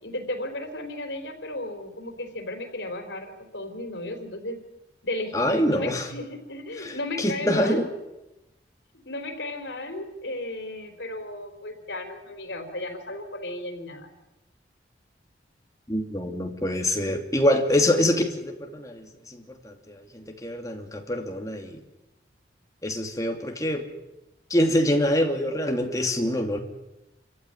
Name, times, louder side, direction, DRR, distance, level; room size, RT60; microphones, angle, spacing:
voice 1, 0.0-4.6 5.0-7.8 9.0-14.1, left 1 dB, 85° left, 6 dB, 4.2 m, -34 dB
voice 2, 5.3-6.1 6.8-7.9 15.9-21.8 22.8-23.8 24.5-26.6, left 1 dB, 20° left, 3 dB, 2.7 m, -25 dB
27.0 x 15.0 x 9.9 m, 0.97 s
head